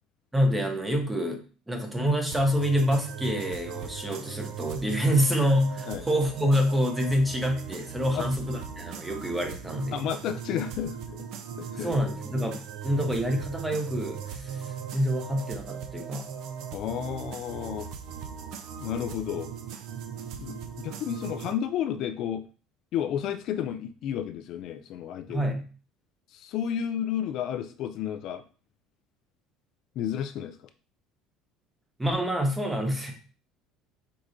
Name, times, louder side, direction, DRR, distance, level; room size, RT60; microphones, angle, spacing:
voice 1, 0.3-1.4 1.7-10.0 11.7-14.6 14.9-16.3 25.3-25.6 32.0-33.1, equal, 10° right, 4 dB, 0.7 m, -27 dB
sound 1, 2.3-21.5, right 7 dB, 55° right, 0.5 m, -39 dB
voice 2, 9.9-11.2 11.6-12.0 16.7-17.9 18.8-19.5 20.4-22.4 22.9-25.5 26.3-28.4 30.0-30.6, left 9 dB, 50° left, 8 dB, 0.3 m, -32 dB
4.7 x 3.8 x 2.6 m, 0.38 s
cardioid pair, 155°, 0 cm